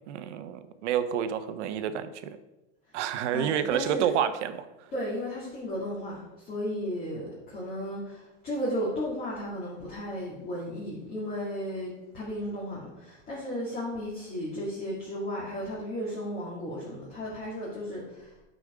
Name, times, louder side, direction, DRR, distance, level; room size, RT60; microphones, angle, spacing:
voice 1, 0.1-2.4 2.9-4.9, right 9 dB, 75° right, 11 dB, 0.8 m, -29 dB
voice 2, 3.3-4.1 4.9-18.3, equal, 25° left, -6 dB, 2.1 m, -34 dB
8.6 x 5.2 x 4.8 m, 1.0 s
supercardioid pair, 145°, 36 cm